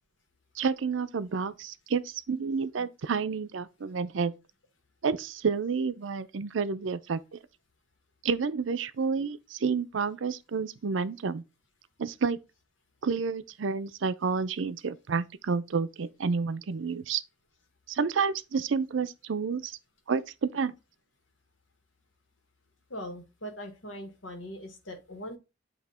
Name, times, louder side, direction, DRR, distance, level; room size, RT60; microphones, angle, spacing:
voice 1, 0.6-4.3 5.0-7.4 8.2-11.4 12.0-12.4 13.0-17.2 17.9-19.8 20.1-20.7, right 5 dB, 80° right, 0.5 m, -30 dB
voice 2, 22.9-25.4, equal, 90° left, 1.7 m, -41 dB
8.1 x 2.9 x 4.2 m
head